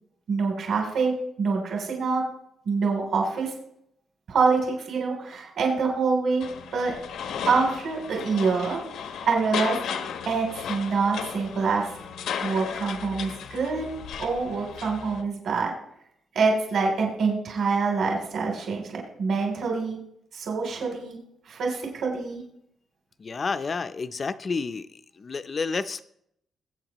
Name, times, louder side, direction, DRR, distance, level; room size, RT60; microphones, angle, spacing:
voice 1, 0.3-1.1 1.4-2.2 2.6-3.5 4.3-6.4 6.7-6.9 7.4-9.8 10.2-11.8 12.4-13.9 14.2-15.7 16.3-20.0 20.3-21.2 21.5-22.4, right 4 dB, 60° right, 0 dB, 3.0 m, -25 dB
sound 1, 6.4-15.2, left 7 dB, 85° left, 1.0 m, -35 dB
voice 2, 23.2-24.9 25.2-26.0, left 4 dB, 30° left, 12 dB, 0.5 m, -30 dB
21.0 x 8.5 x 3.0 m, 0.74 s
cardioid pair, 160°, 0 cm